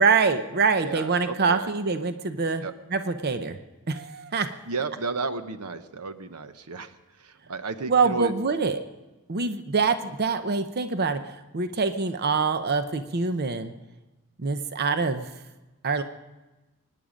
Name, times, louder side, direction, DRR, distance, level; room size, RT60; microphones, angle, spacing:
voice 1, 0.0-2.6 2.9-3.6 3.9-4.5 7.9-8.8 9.3-13.7 14.4-15.3 15.8-16.0, right 4 dB, 45° right, 9 dB, 0.7 m, -25 dB
voice 2, 0.8-1.7 2.6-2.7 4.7-8.3, right 3 dB, 80° right, 10 dB, 0.9 m, -33 dB
24.5 x 10.0 x 5.1 m, 1.1 s
head